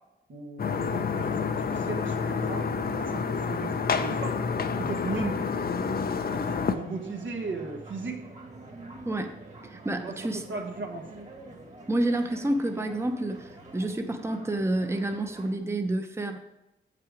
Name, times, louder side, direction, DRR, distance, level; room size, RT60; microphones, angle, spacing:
voice 1, 0.3-2.7 3.0-4.4 4.8-5.5 6.3-8.2 10.0-11.1, right 3 dB, 80° right, 2 dB, 1.4 m, -36 dB
sound 1, 0.6-6.7, left 5 dB, 50° left, 0.6 m, -29 dB
sound 2, 1.9-15.6, right 2 dB, 35° right, 1.6 m, -46 dB
voice 2, 9.6-10.4 11.9-16.4, right 1 dB, 15° right, 7 dB, 0.7 m, -29 dB
8.0 x 5.9 x 4.9 m, 0.94 s
cardioid pair, 60°, 20 cm